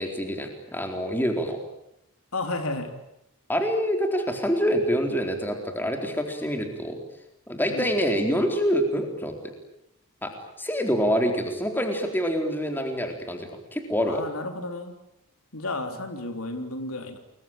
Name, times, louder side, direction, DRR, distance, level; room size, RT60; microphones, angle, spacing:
voice 1, 0.0-1.6 3.5-7.0 7.5-9.3 10.2-10.3 10.6-14.2, equal, 10° left, 4 dB, 4.0 m, -26 dB
voice 2, 2.3-2.9 7.7-7.8 14.1-14.9 15.5-17.2, left 2 dB, 80° left, 6 dB, 3.5 m, -32 dB
29.5 x 22.5 x 9.0 m, 0.81 s
head